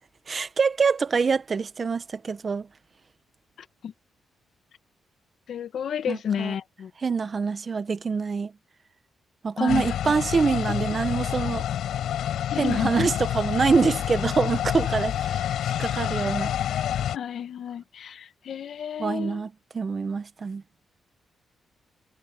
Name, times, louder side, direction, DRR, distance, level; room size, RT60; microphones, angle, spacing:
voice 1, 0.3-2.7 6.1-6.5 7.0-8.5 9.4-11.6 12.6-15.5 15.8-16.5 19.0-20.6, right 5 dB, 35° right, 1.2 m, -25 dB
voice 2, 5.5-6.9 9.6-9.8 12.5-13.1 17.1-19.4, left 8 dB, 65° left, 1.1 m, -31 dB
sound 1, 9.7-17.2, left 10 dB, 85° left, 5.2 m, -28 dB
cardioid pair, 110°, 0 cm